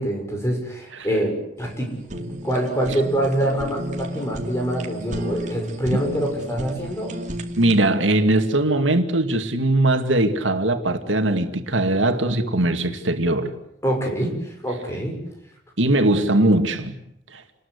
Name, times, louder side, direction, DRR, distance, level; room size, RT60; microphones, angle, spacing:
voice 1, 0.0-7.2 13.8-15.2, right 1 dB, 15° left, 6.3 m, -25 dB
Fire, 1.6-7.9, equal, 40° right, 2.4 m, -34 dB
voice 2, 7.6-13.5 15.8-17.0 17.3-17.4, right 1 dB, 85° right, 2.4 m, -20 dB
29.0 x 20.5 x 8.3 m
head